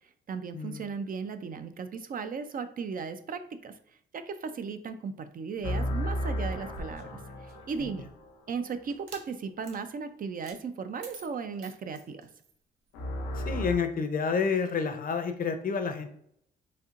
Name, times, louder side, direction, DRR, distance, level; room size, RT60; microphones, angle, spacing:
voice 1, 0.3-3.7 4.1-8.1 8.5-12.2, right 5 dB, 45° right, 9 dB, 0.5 m, -36 dB
sound 1, 5.6-8.7 12.9-13.8, equal, 90° left, 0.7 m, -34 dB
sound 2, 6.5-8.1 8.9-9.3 9.6-9.8 10.4-10.6 11.0-12.6, right 3 dB, 85° right, 0.9 m, -48 dB
voice 2, 13.4-16.1, left 5 dB, 45° left, 9 dB, 0.7 m, -29 dB
4.1 x 2.8 x 2.5 m, 0.70 s
supercardioid pair, 60°, 21 cm